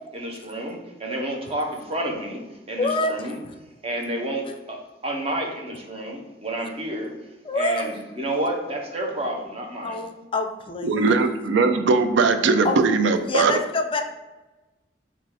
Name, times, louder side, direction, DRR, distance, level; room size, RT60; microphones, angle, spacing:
voice 1, 0.1-3.4 3.8-7.1 7.5-10.0, right 1 dB, 35° right, 0 dB, 0.9 m, -30 dB
voice 2, 2.8-3.1 7.4-7.9 9.8-11.0 12.6-12.8 13.2-14.0, left 2 dB, 30° left, 6 dB, 0.4 m, -26 dB
voice 3, 10.8-13.5, right 4 dB, 90° right, 9 dB, 0.4 m, -20 dB
4.7 x 2.5 x 4.6 m, 1.1 s
head